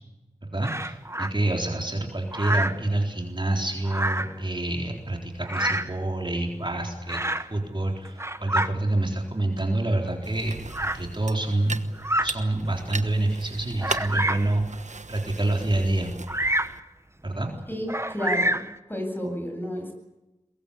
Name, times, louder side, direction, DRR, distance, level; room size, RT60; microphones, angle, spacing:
voice 1, 0.4-7.2 7.5-11.9 12.2-16.1 17.2-17.5, right 2 dB, 35° right, 1 dB, 4.0 m, -27 dB
Bird vocalization bird call bird song, 0.6-1.3 2.3-2.9 3.8-4.4 5.4-6.0 7.1-7.5 8.0-8.7 9.6-9.7 10.7-11.0 11.9-12.3 12.9-13.0 13.8-14.5 16.3-16.8 17.9-18.8, right 1 dB, 20° right, 1.2 m, -27 dB
sound 1, 10.2-16.8, right 3 dB, 65° right, 1.2 m, -38 dB
voice 2, 17.7-19.9, equal, 15° left, 4 dB, 7.9 m, -31 dB
22.5 x 22.0 x 8.6 m, 1.0 s
wide cardioid pair, 55°, 13 cm